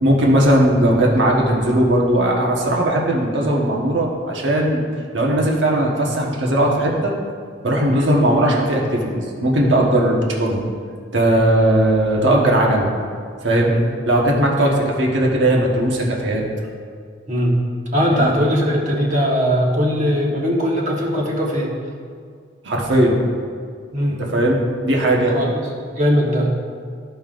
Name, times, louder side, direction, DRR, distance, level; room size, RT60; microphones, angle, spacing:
voice 1, 0.0-4.8 5.1-7.1 7.6-10.6 11.1-12.9 13.4-13.7 14.1-14.7 15.0-16.4 18.1-18.3 22.6-23.2 24.2-24.6 24.8-25.3, right 1 dB, 70° right, -2 dB, 1.2 m, -18 dB
voice 2, 17.9-21.7 23.9-24.2 25.3-26.5, equal, 40° right, -2 dB, 1.3 m, -20 dB
13.5 x 5.5 x 2.5 m, 2.1 s
head